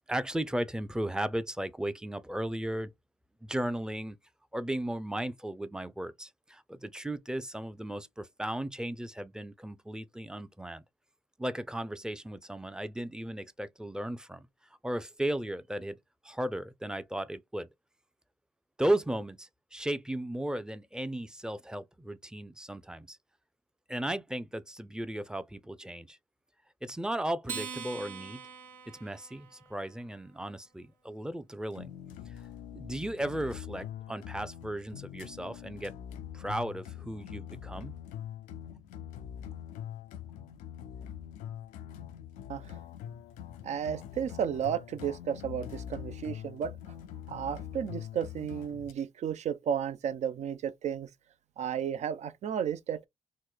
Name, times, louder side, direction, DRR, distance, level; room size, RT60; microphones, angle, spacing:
voice 1, 0.1-2.9 3.4-4.2 4.5-10.8 11.4-14.5 14.8-16.0 16.2-17.7 18.8-23.2 23.9-26.2 26.8-28.4 28.9-31.9 32.7-35.9 36.3-37.9, right 1 dB, 5° right, 0.5 m, -35 dB
Acoustic guitar, 27.4-30.1, right 6 dB, 75° right, 0.9 m, -43 dB
sound 1, 31.7-48.9, left 10 dB, 85° left, 0.4 m, -43 dB
voice 2, 43.6-46.8 47.3-51.1 51.6-53.0, right 8 dB, 60° right, 0.5 m, -33 dB
3.1 x 2.1 x 3.6 m
supercardioid pair, 50°, 13 cm